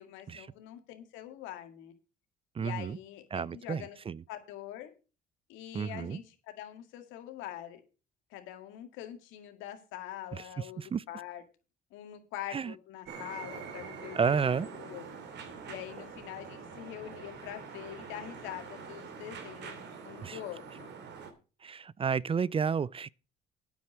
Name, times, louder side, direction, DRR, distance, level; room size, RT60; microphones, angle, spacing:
voice 1, 0.0-1.9 2.6-4.0 4.3-4.9 5.5-7.8 8.3-11.4 11.9-15.0 15.7-20.9, left 12 dB, 80° left, 2.0 m, -44 dB
voice 2, 2.6-3.0 3.3-4.2 5.7-6.2 10.3-10.4 10.8-11.0 12.5-12.7 14.1-14.7 20.2-20.4 21.6-23.1, right 6 dB, 30° right, 0.4 m, -31 dB
sound 1, 13.0-21.3, right 5 dB, 65° right, 2.6 m, -45 dB
9.4 x 7.5 x 6.2 m
supercardioid pair, 70°, 19 cm